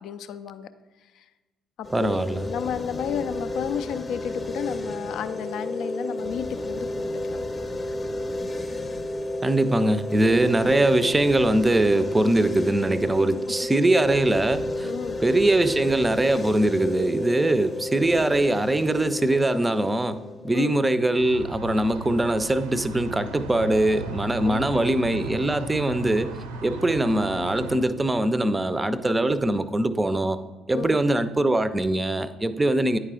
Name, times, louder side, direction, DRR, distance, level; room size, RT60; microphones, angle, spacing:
voice 1, 0.0-0.7 1.1-1.3 1.8-6.9 7.3-7.4 14.8-15.2 20.5-20.8 24.4-24.9 30.7-31.0, left 8 dB, 55° left, 0.4 m, -32 dB
sound 1, 1.8-20.9, left 1 dB, 25° left, 0.8 m, -32 dB
voice 2, 1.9-2.5 9.4-14.9 15.2-20.2 20.4-26.3 26.6-30.4 30.7-33.0, right 1 dB, 15° right, 0.5 m, -22 dB
sound 2, 21.2-27.8, right 2 dB, 70° right, 0.6 m, -37 dB
9.6 x 4.7 x 3.7 m
figure-of-eight pair, 45°, 0 cm